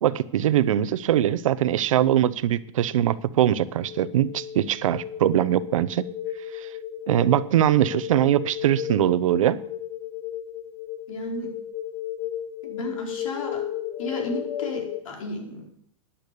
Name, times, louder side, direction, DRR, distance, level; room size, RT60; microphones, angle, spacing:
voice 1, 0.0-6.0 6.5-6.7 7.1-9.6, right 11 dB, 80° right, 16 dB, 0.9 m, -22 dB
sound 1, 3.8-15.0, left 11 dB, 25° left, 0.8 m, -34 dB
voice 2, 11.1-11.6 12.6-13.6 14.0-15.7, left 1 dB, 85° left, 2 dB, 4.6 m, -34 dB
13.0 x 10.5 x 6.8 m, 0.68 s
supercardioid pair, 160°, 17 cm